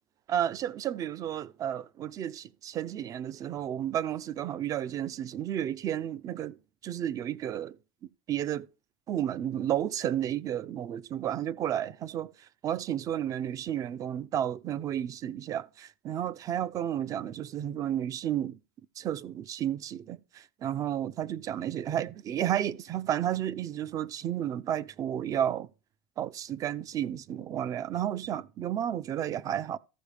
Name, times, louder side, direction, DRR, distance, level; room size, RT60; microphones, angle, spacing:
voice 1, 0.3-6.6 6.8-7.8 8.3-8.7 9.1-12.3 12.6-18.6 19.0-25.7 26.2-29.8, right 10 dB, 35° right, 0.4 m, -32 dB
13.5 x 4.7 x 5.0 m
supercardioid pair, 135°, 10 cm